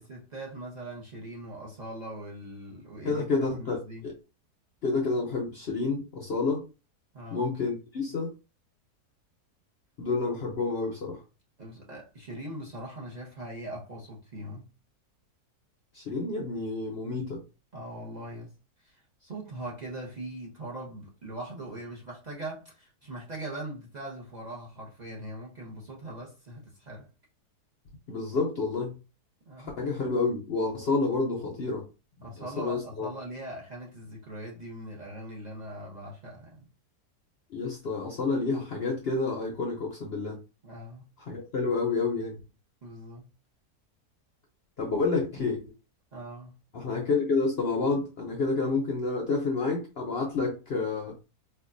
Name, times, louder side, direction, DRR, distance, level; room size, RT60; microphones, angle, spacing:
voice 1, 0.0-3.3 3.6-4.1 7.1-7.5 11.6-14.7 17.7-18.5 18.8-27.1 29.5-29.8 32.2-36.7 40.6-41.1 42.8-43.3 46.1-46.6, right 1 dB, 40° right, 0.6 m, -41 dB
voice 2, 3.0-4.2 4.8-6.6 7.3-8.3 10.0-11.2 15.9-17.4 28.1-29.0 29.6-31.8 32.4-33.1 37.5-40.4 41.3-42.4 44.8-45.6 46.7-51.1, left 3 dB, 60° left, 0.7 m, -29 dB
4.5 x 2.3 x 2.5 m
omnidirectional pair, 1.7 m